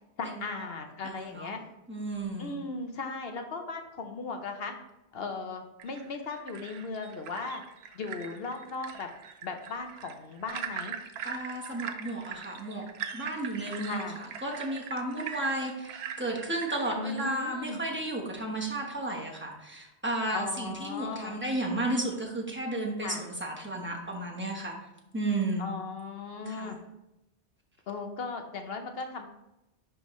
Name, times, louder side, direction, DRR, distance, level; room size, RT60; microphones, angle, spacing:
voice 1, 0.2-1.6 2.4-4.7 5.1-7.6 7.9-9.1 9.4-10.9 13.9-14.2 16.9-17.8 20.3-21.4 23.0-23.2 25.6-26.8 27.9-29.3, left 4 dB, 65° left, 5 dB, 0.9 m, -37 dB
voice 2, 1.0-1.5 1.9-2.6 11.2-12.8 13.1-24.8 25.1-25.7 26.5-26.8, right 2 dB, 10° right, -1 dB, 1.1 m, -33 dB
sound 1, 5.8-17.3, right 7 dB, 70° right, 0.8 m, -41 dB
10.5 x 3.6 x 3.1 m, 0.92 s
omnidirectional pair, 1.1 m